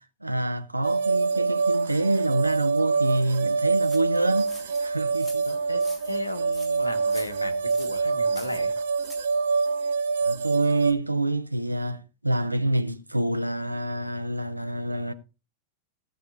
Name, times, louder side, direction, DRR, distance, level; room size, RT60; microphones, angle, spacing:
voice 1, 0.0-4.5 4.8-5.5 10.2-15.1, right 2 dB, 85° right, 0.8 m, -27 dB
sound 1, 0.8-10.9, right 4 dB, 65° right, 1.1 m, -25 dB
sound 2, 3.8-9.4, left 1 dB, 5° left, 2.8 m, -48 dB
voice 2, 5.4-8.7, left 1 dB, 85° left, 1.3 m, -36 dB
16.5 x 6.8 x 3.9 m
figure-of-eight pair, 90°, 0 cm